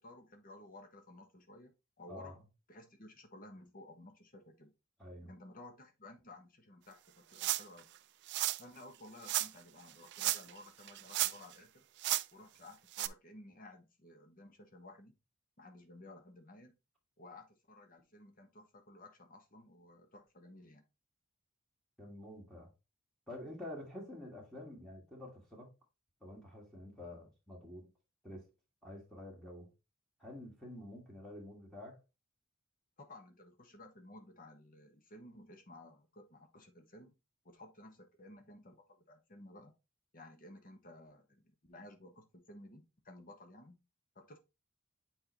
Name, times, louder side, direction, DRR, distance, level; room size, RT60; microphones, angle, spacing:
voice 1, 0.0-1.7 2.0-2.4 2.7-4.7 5.2-7.9 8.6-11.8 12.3-15.2 15.6-16.7 17.2-20.8 33.0-37.1 37.4-39.7 40.1-43.8 44.1-44.4, left 1 dB, 40° left, 1.3 m, -55 dB
voice 2, 2.1-2.4 5.0-5.3 22.0-22.7 23.3-25.7 26.2-27.9 28.2-28.5 28.8-29.7 30.2-32.0, left 1 dB, ahead, 1.6 m, -48 dB
sound 1, 7.4-7.8 8.3-8.6 9.2-9.5 10.1-10.6 10.9-11.5 12.0-12.2 12.9-13.1, right 16 dB, 55° right, 0.3 m, -33 dB
7.6 x 4.5 x 3.0 m
head